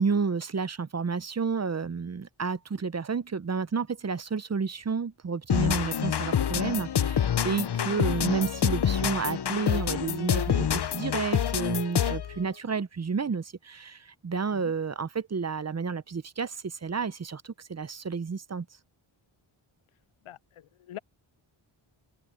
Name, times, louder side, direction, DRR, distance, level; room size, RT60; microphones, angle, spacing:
voice 1, 0.0-18.7, right 5 dB, 35° right, 0.7 m, -31 dB
sound 1, 5.5-12.4, left 8 dB, 55° left, 0.9 m, -27 dB
voice 2, 20.2-21.0, left 12 dB, 85° left, 0.6 m, -44 dB
open air
wide cardioid pair, 80°, 49 cm